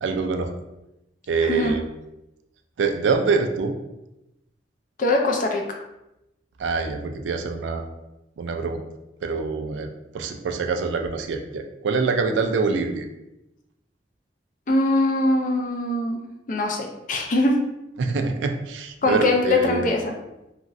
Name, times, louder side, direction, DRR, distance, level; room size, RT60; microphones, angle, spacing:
voice 1, 0.0-0.5 1.3-1.9 2.8-3.7 6.6-7.9 8.4-8.8 9.2-9.9 10.1-13.1 18.0-19.9, right 4 dB, 90° right, 5 dB, 0.4 m, -25 dB
voice 2, 1.4-1.8 5.0-5.8 14.7-16.2 16.5-17.6 19.0-20.1, left 2 dB, 45° left, 2 dB, 0.4 m, -22 dB
3.0 x 2.5 x 2.5 m, 0.91 s
head